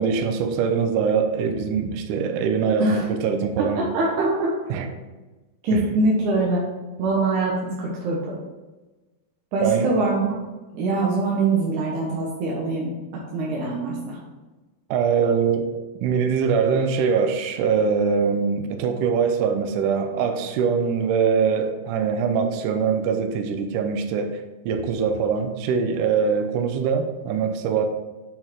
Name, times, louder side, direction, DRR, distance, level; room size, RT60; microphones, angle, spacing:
voice 1, 0.0-3.9 4.7-4.9 5.7-5.8 9.6-9.9 14.9-15.6 16.0-24.3 24.7-27.9, right 6 dB, 85° right, 6 dB, 1.8 m, -23 dB
voice 2, 3.6-4.5 5.6-6.6 7.0-8.2 9.5-10.4 10.7-12.9 13.3-14.2, right 2 dB, 65° right, -4 dB, 2.0 m, -23 dB
8.6 x 4.5 x 3.7 m, 1.2 s
omnidirectional pair, 4.6 m